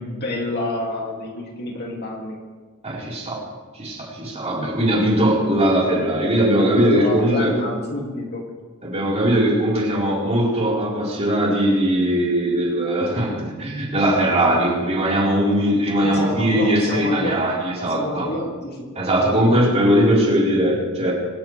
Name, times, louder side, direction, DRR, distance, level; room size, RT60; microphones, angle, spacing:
voice 1, 0.0-2.4 6.6-8.5 16.0-17.4 17.7-18.9, left 1 dB, 50° left, -1 dB, 2.6 m, -28 dB
voice 2, 2.8-3.4 3.7-7.5 8.8-18.3 19.0-21.1, right 1 dB, 30° right, -5 dB, 4.4 m, -20 dB
24.0 x 13.0 x 3.4 m, 1.4 s
head